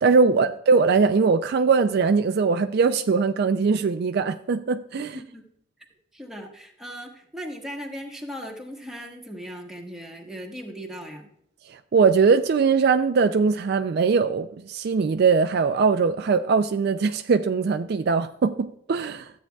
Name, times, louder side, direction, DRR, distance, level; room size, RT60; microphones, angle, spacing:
voice 1, 0.0-5.2 11.7-19.3, right 5 dB, 55° right, 0.3 m, -21 dB
voice 2, 5.1-5.5 6.1-11.3, equal, ahead, 1.3 m, -38 dB
13.5 x 8.3 x 2.3 m
head